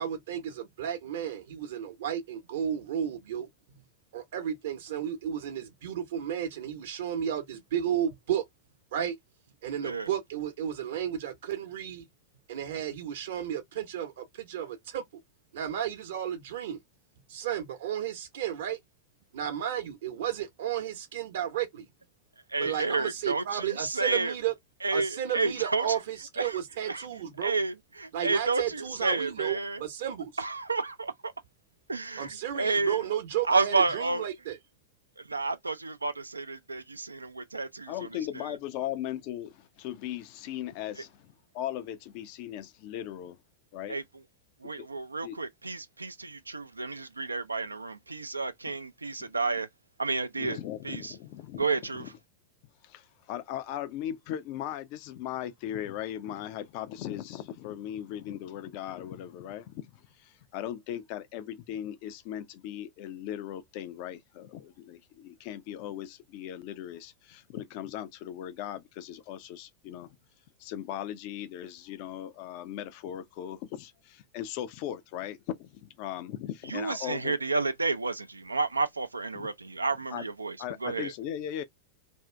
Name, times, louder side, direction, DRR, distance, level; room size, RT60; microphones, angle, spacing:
voice 1, 0.0-3.5 4.1-8.4 8.9-9.2 9.6-12.0 12.5-15.0 15.5-16.8 17.3-18.8 19.3-21.9 22.6-24.5 24.9-27.5 28.1-30.3 32.2-34.6, right 10 dB, 55° right, 0.8 m, -33 dB
voice 2, 22.5-24.3 24.8-26.0 26.4-27.1 27.4-29.8 30.4-31.3 31.9-33.1 33.4-34.3 35.2-38.1 38.3-38.6 43.9-44.0 44.6-49.7 50.0-50.6 50.8-51.1 51.6-52.1 76.7-81.1, right 3 dB, 80° right, 0.4 m, -31 dB
voice 3, 37.9-43.4 43.7-44.0 44.8-44.9 45.2-45.4 49.2-49.3 50.4-51.7 52.0-52.1 52.8-59.9 60.2-70.2 70.6-77.3 79.3-79.5 80.1-80.2 80.6-81.6, left 11 dB, 45° left, 0.4 m, -38 dB
2.6 x 2.4 x 3.2 m
figure-of-eight pair, 90°, 0 cm